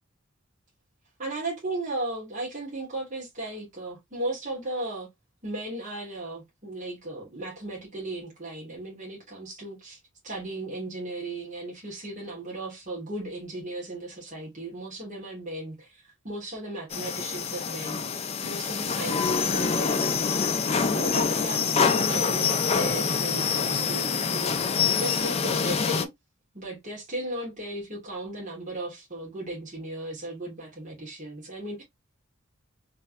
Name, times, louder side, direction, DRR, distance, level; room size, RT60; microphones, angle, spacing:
voice 1, 1.2-5.1 5.4-10.0 10.2-18.0 18.4-20.1 20.7-26.1 26.5-31.8, right 1 dB, 35° right, 1.5 m, -36 dB
sound 1, 16.9-26.0, left 6 dB, 30° left, 0.3 m, -26 dB
3.3 x 3.2 x 2.5 m
head